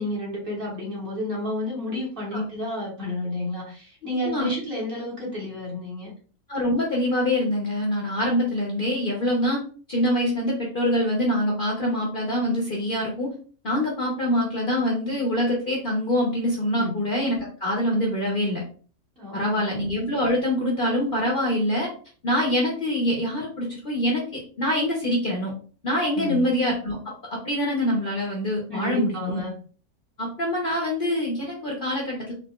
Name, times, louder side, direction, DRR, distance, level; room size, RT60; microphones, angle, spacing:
voice 1, 0.0-6.1 16.8-16.9 19.2-19.8 26.1-26.5 28.7-29.5, left 1 dB, 40° right, -4 dB, 1.4 m, -31 dB
voice 2, 6.5-9.6 9.9-13.3 13.6-18.6 19.3-21.9 22.2-25.5 25.8-27.0 27.3-29.4 30.2-32.3, left 1 dB, 45° left, -1 dB, 0.8 m, -25 dB
4.0 x 2.6 x 2.3 m, 0.41 s
omnidirectional pair, 1.5 m